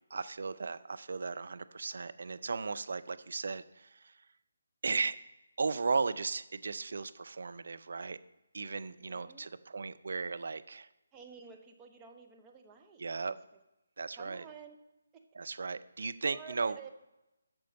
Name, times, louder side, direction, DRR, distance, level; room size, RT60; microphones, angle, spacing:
voice 1, 0.1-4.3 4.8-5.2 5.6-8.2 8.5-10.9 13.0-13.3 14.0-14.4 15.3-16.9, right 4 dB, 60° right, 13 dB, 0.4 m, -36 dB
voice 2, 8.8-9.4 11.1-13.0 14.2-14.8 15.1-15.2 16.3-16.9, right 6 dB, 15° right, 3 dB, 0.8 m, -51 dB
9.1 x 6.3 x 5.3 m, 0.96 s
figure-of-eight pair, 150°, 0 cm